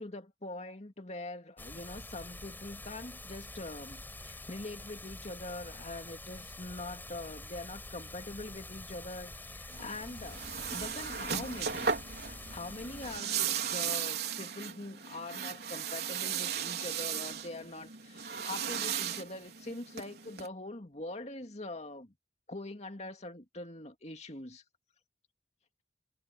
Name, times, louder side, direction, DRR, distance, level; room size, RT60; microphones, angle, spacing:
voice 1, 0.0-10.4 10.7-12.0 12.5-22.1 22.5-24.6, left 2 dB, 40° left, 2.4 m, -43 dB
sound 1, 1.6-13.2, left 2 dB, 10° left, 7.2 m, -46 dB
sound 2, 9.7-20.5, right 7 dB, 65° right, 4.4 m, -36 dB
head